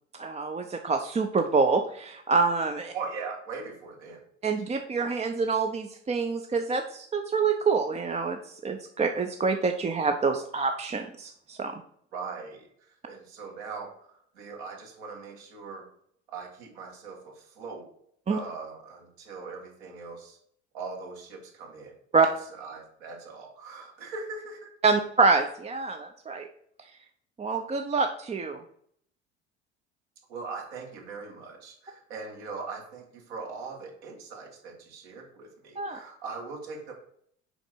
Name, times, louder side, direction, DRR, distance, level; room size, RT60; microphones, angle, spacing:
voice 1, 0.1-2.9 4.4-11.8 18.3-18.4 22.1-22.3 24.8-26.5 27.4-28.6 35.8-36.0, right 4 dB, 20° right, 5 dB, 0.6 m, -26 dB
voice 2, 2.9-4.2 12.1-12.7 13.1-15.9 16.3-17.9 18.3-20.4 20.7-22.3 22.6-24.7 30.3-36.9, right 4 dB, 65° right, 1 dB, 2.0 m, -40 dB
6.9 x 4.8 x 4.5 m, 0.65 s
figure-of-eight pair, 60°, 36 cm